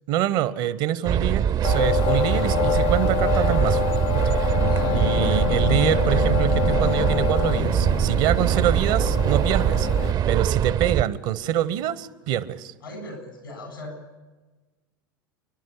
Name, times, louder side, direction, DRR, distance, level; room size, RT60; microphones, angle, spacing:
voice 1, 0.1-3.8 4.4-4.5 4.9-12.7, right 12 dB, 60° right, 1.1 m, -25 dB
sound 1, 1.1-11.0, right 9 dB, 35° right, 0.8 m, -23 dB
sound 2, 1.6-10.1, left 13 dB, 55° left, 0.6 m, -26 dB
voice 2, 2.2-2.6 4.6-5.1 8.5-8.9 12.8-14.0, left 2 dB, 85° left, 7.5 m, -37 dB
29.0 x 11.5 x 9.9 m
hypercardioid pair, 80°, 11 cm